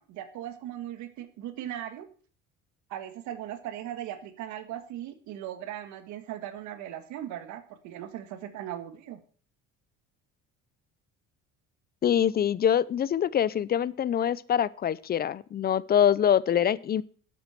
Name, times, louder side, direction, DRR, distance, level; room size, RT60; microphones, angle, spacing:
voice 1, 0.0-2.1 2.9-9.2, right 11 dB, 75° right, 9 dB, 1.8 m, -38 dB
voice 2, 12.0-17.0, left 9 dB, 30° left, 20 dB, 0.6 m, -24 dB
11.5 x 8.7 x 5.9 m, 0.43 s
cardioid pair, 120°, 30 cm